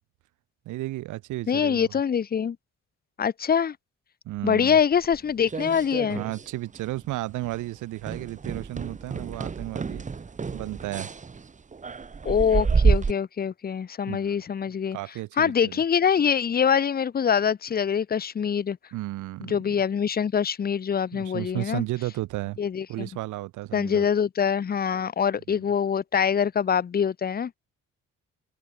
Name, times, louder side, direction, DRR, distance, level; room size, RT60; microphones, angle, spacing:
voice 1, 0.7-1.9 4.2-4.8 6.1-10.0 10.5-11.1 14.1-14.4 14.9-15.8 18.9-19.5 21.1-22.6 22.9-24.1, right 17 dB, 80° right, 0.7 m, -33 dB
voice 2, 1.5-2.6 3.2-3.8 4.4-6.2 12.2-15.0 15.4-18.8 19.4-21.8 22.6-23.1 23.7-27.5, left 7 dB, 30° left, 0.7 m, -24 dB
sound 1, 5.0-6.5 6.7-7.1 7.4-7.6 8.0-13.1, right 5 dB, 25° right, 1.0 m, -28 dB
cardioid pair, 90°, 30 cm